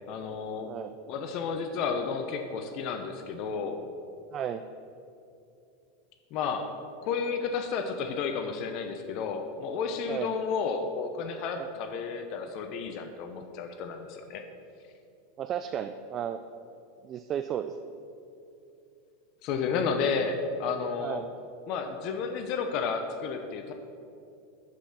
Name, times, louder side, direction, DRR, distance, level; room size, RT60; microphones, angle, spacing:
voice 1, 0.1-0.7 1.1-3.8 6.3-6.7 7.0-14.4 19.4-21.2 21.7-23.7, left 5 dB, 55° left, 6 dB, 0.9 m, -32 dB
voice 2, 4.3-4.6 10.1-10.3 11.6-11.7 15.4-16.4 17.0-17.8 21.0-21.4, right 9 dB, 40° right, 9 dB, 0.4 m, -34 dB
11.5 x 5.6 x 5.9 m, 2.6 s
hypercardioid pair, 95°, 0 cm